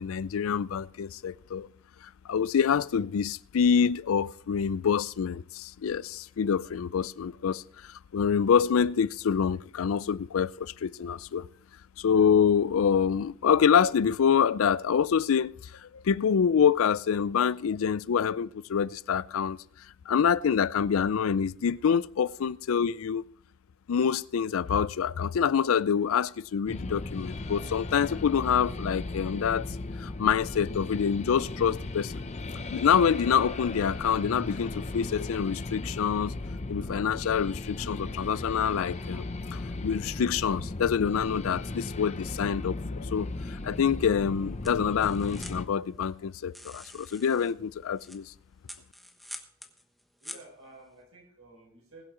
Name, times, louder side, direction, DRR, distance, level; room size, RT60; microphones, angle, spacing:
voice 1, 0.0-1.7 2.3-11.5 12.0-15.5 15.8-19.6 20.1-23.2 23.9-29.6 30.0-32.1 32.7-36.3 36.7-48.2, left 7 dB, 75° left, 0.4 m, -26 dB
sound 1, 26.7-45.7, left 2 dB, 35° left, 0.7 m, -36 dB
sound 2, 43.7-51.0, left 1 dB, ahead, 1.1 m, -49 dB
voice 2, 50.2-52.0, right 2 dB, 75° right, 5.1 m, -52 dB
20.5 x 7.8 x 3.8 m
head